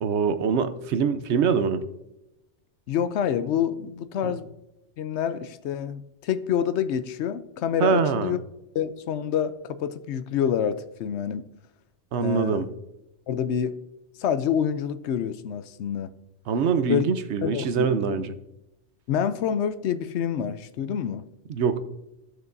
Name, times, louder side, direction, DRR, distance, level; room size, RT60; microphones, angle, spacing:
voice 1, 0.0-1.8 4.2-4.3 7.8-8.4 12.1-12.7 16.5-18.3 21.5-21.8, right 6 dB, 75° right, 11 dB, 0.9 m, -24 dB
voice 2, 2.9-4.5 5.0-8.4 8.7-11.5 12.2-12.7 13.3-13.8 14.2-16.1 16.9-17.0 17.4-18.2 19.1-21.2, left 8 dB, 75° left, 12 dB, 0.9 m, -27 dB
14.5 x 6.3 x 2.6 m, 0.93 s
omnidirectional pair, 1.2 m